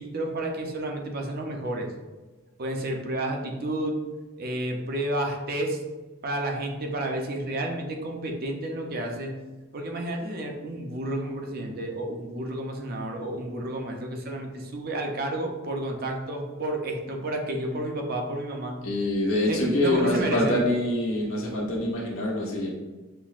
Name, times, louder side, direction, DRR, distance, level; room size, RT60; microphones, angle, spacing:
voice 1, 0.0-1.9 2.6-4.0 4.4-5.8 6.2-9.3 9.7-18.8 19.5-20.6, right 1 dB, 45° right, 2 dB, 0.5 m, -31 dB
voice 2, 18.8-22.7, left 1 dB, 90° left, -4 dB, 1.1 m, -25 dB
5.7 x 2.1 x 2.4 m, 1.2 s
head